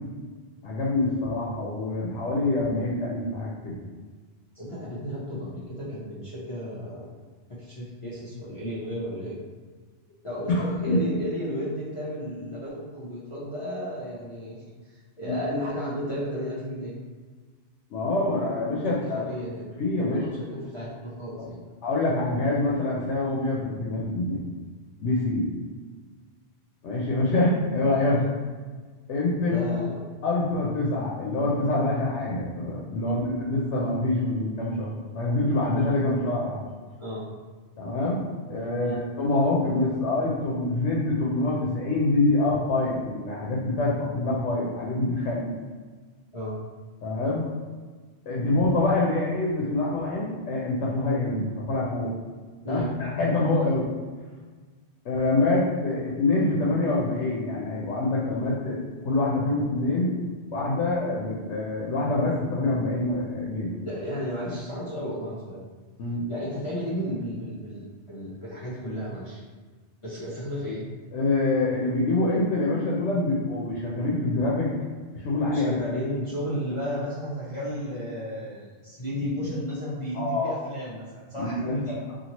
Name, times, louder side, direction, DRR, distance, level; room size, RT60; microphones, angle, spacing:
voice 1, 0.6-3.7 10.5-10.6 10.9-11.0 15.3-15.4 17.9-19.2 19.8-20.3 21.4-21.5 21.8-24.4 25.0-25.5 26.8-28.2 29.1-29.6 30.2-36.6 37.8-45.5 47.0-47.5 48.3-52.1 52.7-53.9 55.0-58.8 59.0-60.1 60.5-63.7 66.0-66.2 71.1-74.7 75.1-75.8 80.1-80.5 81.4-82.1, left 2 dB, 90° left, -4 dB, 0.9 m, -25 dB
voice 2, 4.5-7.1 7.5-9.4 10.2-17.0 18.9-19.7 20.1-21.6 28.2-28.3 29.5-30.0 37.0-37.3 38.8-39.0 46.3-46.6 52.6-52.9 63.8-65.6 66.3-69.4 70.0-70.9 75.5-82.0, equal, 40° left, -8 dB, 0.5 m, -33 dB
2.8 x 2.6 x 2.9 m, 1.5 s
omnidirectional pair, 1.1 m